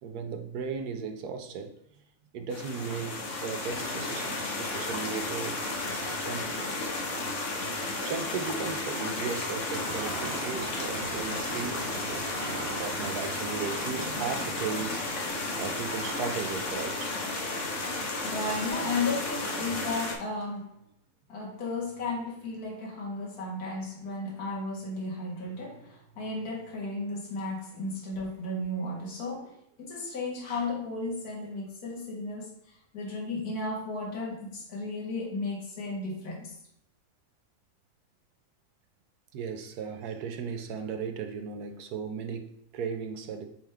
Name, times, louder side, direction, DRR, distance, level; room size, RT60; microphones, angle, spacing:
voice 1, 0.0-1.8 2.3-5.6 5.9-6.7 8.0-11.9 12.4-15.1 15.6-17.1 39.3-43.5, right 6 dB, 90° right, 7 dB, 1.3 m, -36 dB
sound 1, 2.5-20.1, left 2 dB, 55° left, 1.3 m, -33 dB
sound 2, 9.7-16.7, right 5 dB, 60° right, 0.6 m, -42 dB
voice 2, 18.2-20.8 21.3-36.6, left 2 dB, 75° left, -4 dB, 2.0 m, -34 dB
8.1 x 3.6 x 3.4 m, 0.76 s
omnidirectional pair, 1.6 m